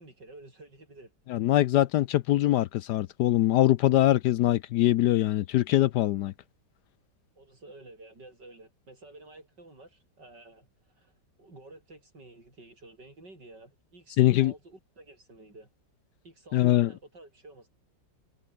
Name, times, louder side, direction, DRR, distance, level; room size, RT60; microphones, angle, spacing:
voice 1, 0.0-1.1 7.4-15.7 16.2-17.7, right 2 dB, 65° right, 8.1 m, -51 dB
voice 2, 1.3-6.3 14.2-14.5 16.5-16.9, left 14 dB, 70° left, 1.1 m, -23 dB
omnidirectional pair, 2.0 m